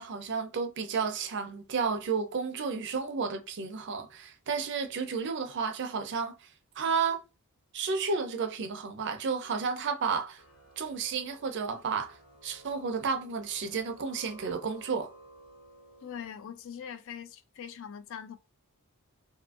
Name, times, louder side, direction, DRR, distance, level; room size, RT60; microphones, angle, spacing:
voice 1, 0.0-6.3 6.8-7.2 7.7-10.4 10.8-12.2 12.4-15.1, right 5 dB, 50° right, 0.5 m, -32 dB
sound 1, 10.4-16.3, right 1 dB, 80° left, 1.0 m, -54 dB
voice 2, 16.0-18.4, left 8 dB, 60° left, 0.3 m, -42 dB
2.6 x 2.5 x 2.4 m
head